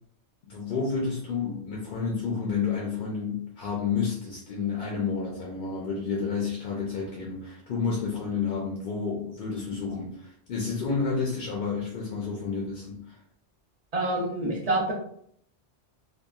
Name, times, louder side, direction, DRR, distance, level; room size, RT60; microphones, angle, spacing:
voice 1, 0.5-13.2, left 5 dB, 60° left, -2 dB, 0.6 m, -30 dB
voice 2, 13.9-14.9, right 2 dB, 40° right, -1 dB, 0.7 m, -27 dB
2.8 x 2.2 x 2.3 m, 0.65 s
omnidirectional pair, 1.2 m